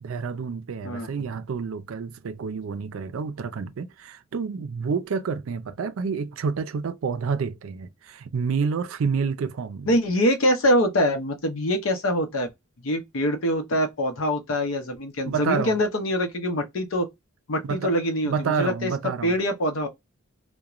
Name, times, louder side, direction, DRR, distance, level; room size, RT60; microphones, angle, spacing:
voice 1, 0.0-9.9 15.3-15.8 17.6-17.9 18.2-19.4, right 5 dB, 85° right, 0.4 m, -29 dB
voice 2, 9.9-12.5 12.8-17.1 17.5-19.9, equal, 80° left, 0.7 m, -24 dB
2.4 x 2.1 x 2.9 m
head